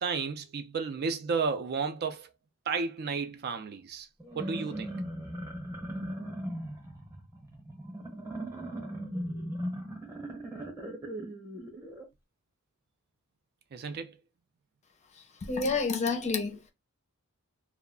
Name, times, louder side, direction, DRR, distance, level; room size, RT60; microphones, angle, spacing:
voice 1, 0.0-2.3 2.7-4.1 4.3-4.9 6.0-6.1 13.7-14.2, right 5 dB, 45° right, 0.4 m, -32 dB
sound 1, 4.2-12.0, right 1 dB, 10° right, 0.8 m, -38 dB
voice 2, 15.4-16.7, left 4 dB, 30° left, 0.5 m, -29 dB
2.2 x 2.1 x 3.5 m
head